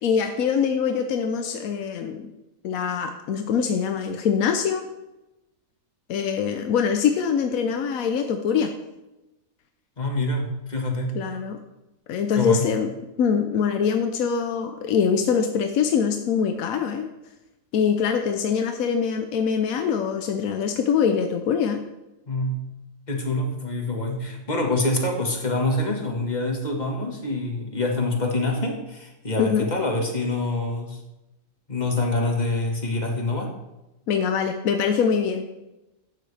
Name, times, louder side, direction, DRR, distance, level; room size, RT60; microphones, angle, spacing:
voice 1, 0.0-2.3 2.6-4.8 6.1-8.7 11.1-11.6 12.1-12.9 13.2-17.1 17.7-21.8 29.4-29.7 34.1-35.5, left 7 dB, 80° left, 6 dB, 1.2 m, -23 dB
voice 2, 10.0-11.2 12.4-12.7 22.3-22.6 23.1-31.0 31.7-33.5, left 2 dB, 30° left, 1 dB, 1.7 m, -26 dB
12.5 x 9.1 x 3.3 m, 1.0 s
omnidirectional pair, 1.5 m